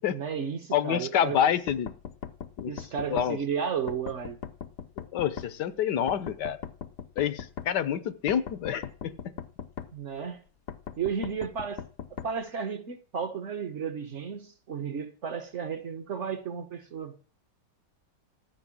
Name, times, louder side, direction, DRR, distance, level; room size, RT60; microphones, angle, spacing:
voice 1, 0.1-1.5 2.7-4.4 9.9-10.4 11.0-11.8 12.1-17.1, right 6 dB, 50° right, 1.1 m, -33 dB
voice 2, 0.7-1.9 2.6-2.7 3.1-3.4 5.0-6.6 7.2-9.3, left 9 dB, 75° left, 1.4 m, -28 dB
sound 1, 1.7-3.3 3.9-5.5 6.1-7.7 8.3-9.9 10.7-12.3, left 8 dB, 60° left, 1.0 m, -39 dB
13.5 x 6.7 x 9.9 m
omnidirectional pair, 1.9 m